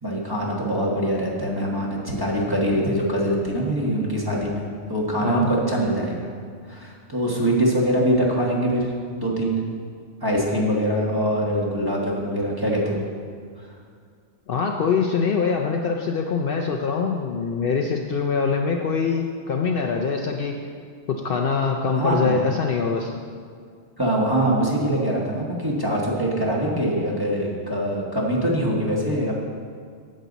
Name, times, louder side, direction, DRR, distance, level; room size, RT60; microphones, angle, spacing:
voice 1, 0.0-4.6 4.9-6.3 6.6-8.9 9.2-9.6 10.2-13.0 13.6-13.7 21.9-22.4 24.0-29.3, right 1 dB, 20° right, -4 dB, 1.4 m, -23 dB
voice 2, 14.5-20.5 21.1-23.1, left 5 dB, 60° left, 2 dB, 0.7 m, -24 dB
10.0 x 7.6 x 4.0 m, 2.1 s
omnidirectional pair, 1.2 m